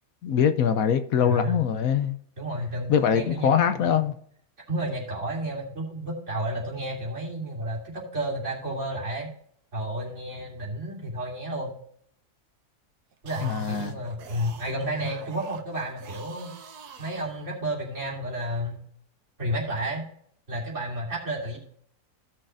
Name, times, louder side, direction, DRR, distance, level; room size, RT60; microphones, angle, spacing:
voice 1, 0.2-2.2 2.9-4.1 13.4-13.9, left 8 dB, 70° left, 9 dB, 1.1 m, -23 dB
voice 2, 1.2-1.6 2.4-4.0 4.7-9.3 9.7-11.8 13.2-16.5 17.0-18.8 19.4-20.0 20.5-21.6, right 1 dB, 50° right, -4 dB, 3.5 m, -31 dB
sound 1, 13.1-17.9, right 6 dB, 85° right, 1.5 m, -45 dB
16.5 x 6.4 x 2.6 m, 0.65 s
omnidirectional pair, 1.6 m